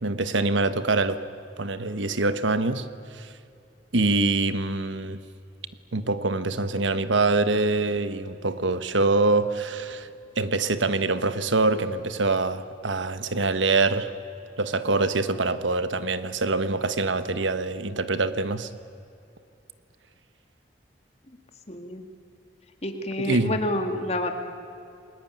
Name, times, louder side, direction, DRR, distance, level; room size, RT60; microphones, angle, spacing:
voice 1, 0.0-1.2 1.6-2.8 3.1-3.3 3.9-5.2 5.9-10.1 10.4-14.1 14.6-18.7 23.2-23.6, right 3 dB, 90° right, 1.3 m, -24 dB
voice 2, 21.7-22.0 22.8-24.3, left 1 dB, 35° left, 2.2 m, -28 dB
29.5 x 20.5 x 9.2 m
head